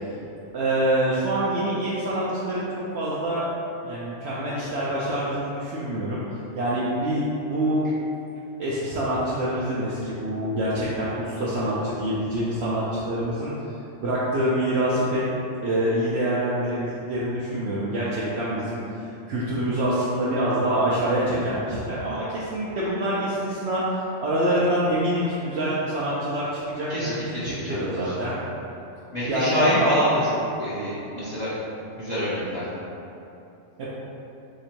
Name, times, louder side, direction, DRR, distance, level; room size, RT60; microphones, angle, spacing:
voice 1, 0.5-3.5 3.8-6.2 6.5-7.8 8.6-13.5 14.0-15.2 15.6-18.8 19.3-27.1 27.4-28.4 29.2-29.9 33.8-33.9, right 1 dB, 65° right, -8 dB, 0.8 m, -26 dB
voice 2, 26.9-28.1 29.1-31.5 32.0-32.7, equal, 40° left, -12 dB, 0.7 m, -26 dB
2.8 x 2.6 x 4.3 m, 2.9 s
omnidirectional pair, 1.3 m